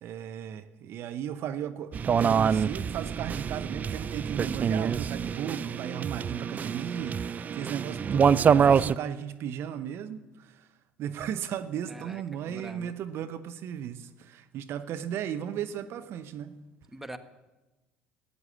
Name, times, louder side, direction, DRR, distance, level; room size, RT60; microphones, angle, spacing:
voice 1, 0.0-10.7 11.0-16.6, right 9 dB, 50° right, 10 dB, 0.8 m, -36 dB
sound 1, 1.9-8.9, right 7 dB, 30° right, 0.4 m, -26 dB
voice 2, 11.9-12.9 16.9-17.2, right 1 dB, 5° right, 8 dB, 1.2 m, -43 dB
14.0 x 9.8 x 7.4 m, 1.1 s
figure-of-eight pair, 60°, 5 cm